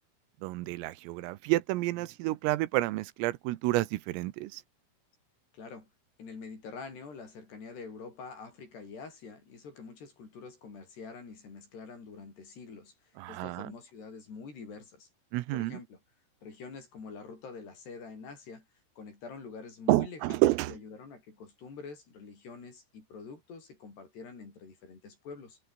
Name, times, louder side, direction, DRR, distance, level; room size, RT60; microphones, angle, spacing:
voice 1, 0.4-4.6 13.2-13.7 15.3-15.8 19.9-20.8, right 18 dB, 85° right, 3.7 m, -29 dB
voice 2, 5.5-5.9 6.2-12.9 13.3-15.1 15.5-16.0 16.4-18.6 19.0-25.6, left 4 dB, 55° left, 8.4 m, -46 dB
omnidirectional pair, 5.9 m